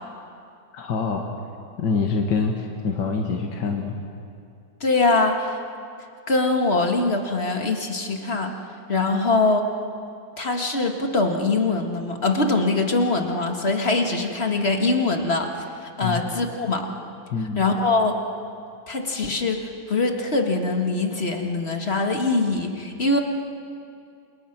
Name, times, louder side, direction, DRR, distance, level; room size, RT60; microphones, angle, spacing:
voice 1, 0.7-1.3 1.8-4.0 16.0-16.2 17.3-17.6, left 4 dB, 80° left, 2 dB, 2.1 m, -25 dB
voice 2, 4.8-5.6 6.3-8.5 8.9-9.7 10.4-15.5 15.8-16.9 17.6-18.2 18.9-23.2, left 3 dB, 35° left, 3 dB, 2.0 m, -23 dB
27.5 x 27.5 x 6.1 m, 2.5 s
omnidirectional pair, 1.9 m